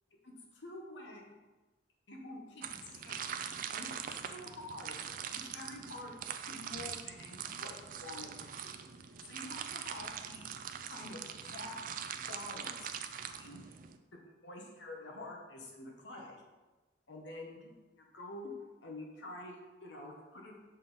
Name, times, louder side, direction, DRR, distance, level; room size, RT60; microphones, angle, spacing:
voice 1, 0.2-1.2 2.1-3.2 3.7-4.0 4.3-5.0 5.4-6.2 6.4-8.8 9.2-10.5 10.8-11.2 11.5-11.7 12.3-12.9 13.3-13.8 14.1-16.4 17.1-17.6 18.0-18.5 18.8-20.6, left 1 dB, 90° left, 0 dB, 1.0 m, -47 dB
sound 1, 2.6-14.0, right 8 dB, 50° right, 0.4 m, -43 dB
6.5 x 3.9 x 4.0 m, 1.2 s
head